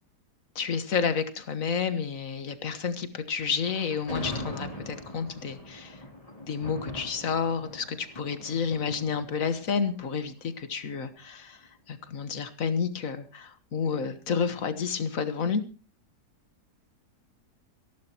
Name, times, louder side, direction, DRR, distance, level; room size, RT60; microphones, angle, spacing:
voice 1, 0.5-6.0 6.4-11.6 11.9-15.6, left 6 dB, 55° left, 11 dB, 1.8 m, -30 dB
Thunder, 3.6-10.8, left 1 dB, 20° left, 3.3 m, -41 dB
26.5 x 11.5 x 3.0 m, 0.32 s
omnidirectional pair, 1.7 m